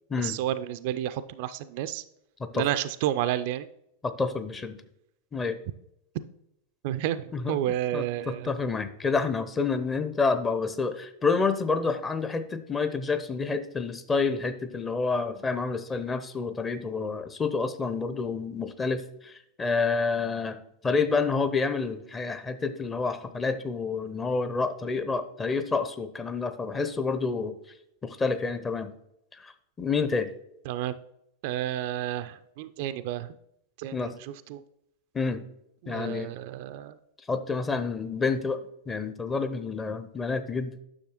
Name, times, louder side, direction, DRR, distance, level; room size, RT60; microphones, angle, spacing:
voice 1, 0.2-2.0 2.5-3.7 6.8-8.5 30.7-31.0 31.4-33.3 33.8-34.1 34.5-34.6 35.8-36.9, right 12 dB, 50° right, 12 dB, 0.3 m, -30 dB
voice 2, 4.0-4.8 5.3-5.6 7.3-7.6 7.9-20.6 20.8-27.5 28.0-28.9 29.4-29.5 29.8-30.3 33.9-34.1 35.1-35.4 35.9-36.3 37.3-38.6 38.9-40.7, left 4 dB, 15° left, 10 dB, 0.6 m, -28 dB
9.7 x 6.4 x 3.0 m, 0.79 s
figure-of-eight pair, 90°, 0 cm